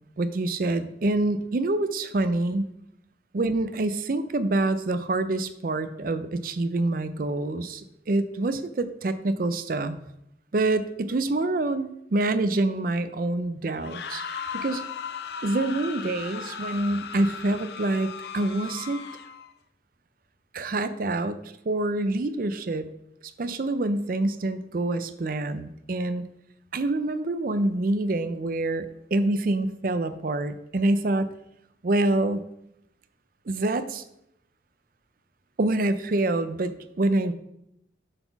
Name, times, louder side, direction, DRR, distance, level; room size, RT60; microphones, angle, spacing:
voice 1, 0.2-2.7 3.3-10.0 10.5-14.2 14.5-14.8 15.4-19.0 20.5-22.9 23.4-26.2 26.7-31.3 31.8-32.5 33.5-34.0 35.6-37.3, right 2 dB, 45° right, 12 dB, 0.4 m, -26 dB
sound 1, 13.7-19.5, left 6 dB, 60° left, 0.5 m, -37 dB
7.8 x 4.1 x 5.9 m, 0.82 s
head